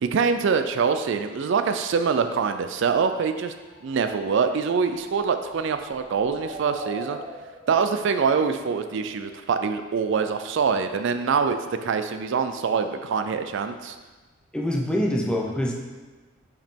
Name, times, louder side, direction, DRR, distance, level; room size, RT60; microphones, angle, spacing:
voice 1, 0.0-3.5 3.8-7.2 7.7-14.0, right 5 dB, 60° right, 8 dB, 0.4 m, -24 dB
sound 1, 3.6-9.4, right 1 dB, 45° right, 1.8 m, -42 dB
voice 2, 14.5-15.7, equal, 5° left, -1 dB, 0.7 m, -25 dB
5.9 x 5.1 x 4.4 m, 1.3 s
head